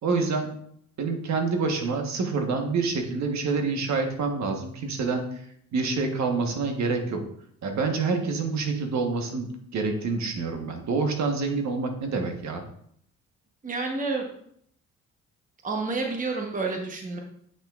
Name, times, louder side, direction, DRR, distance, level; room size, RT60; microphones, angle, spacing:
voice 1, 0.0-0.5 1.0-5.4 5.7-7.2 7.6-9.5 9.7-12.6, right 4 dB, 65° right, 4 dB, 1.3 m, -27 dB
voice 2, 13.6-14.3 15.6-17.2, right 3 dB, 25° right, 2 dB, 1.1 m, -29 dB
8.4 x 6.0 x 2.5 m, 0.68 s
cardioid pair, 90°, 30 cm